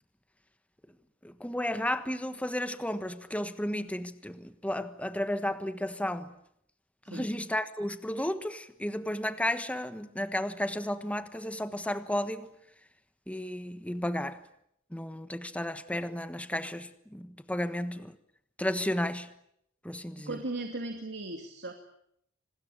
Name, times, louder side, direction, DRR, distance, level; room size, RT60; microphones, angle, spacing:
voice 1, 1.2-6.3 7.1-12.5 13.3-14.4 14.9-18.1 18.6-19.3 19.8-20.4, left 1 dB, 5° left, 1.3 m, -33 dB
voice 2, 20.2-21.7, right 2 dB, 60° right, 2.5 m, -37 dB
26.5 x 20.5 x 8.7 m
head